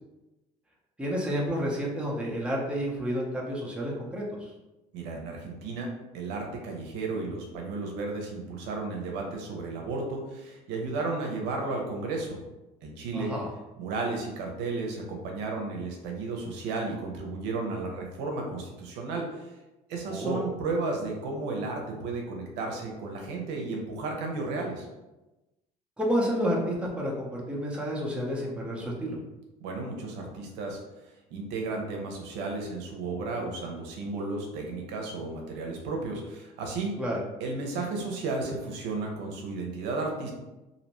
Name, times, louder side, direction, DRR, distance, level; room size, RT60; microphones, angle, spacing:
voice 1, 1.0-4.5 13.1-13.5 20.1-20.4 26.0-29.2 37.0-37.2, equal, 5° right, -3 dB, 0.7 m, -30 dB
voice 2, 4.9-5.9 6.1-12.4 12.8-13.3 13.8-19.5 19.9-24.9 29.6-30.8 31.3-36.9 37.4-40.3, right 3 dB, 80° right, 1 dB, 0.7 m, -33 dB
2.6 x 2.1 x 3.0 m, 1.0 s
supercardioid pair, 90°, 18 cm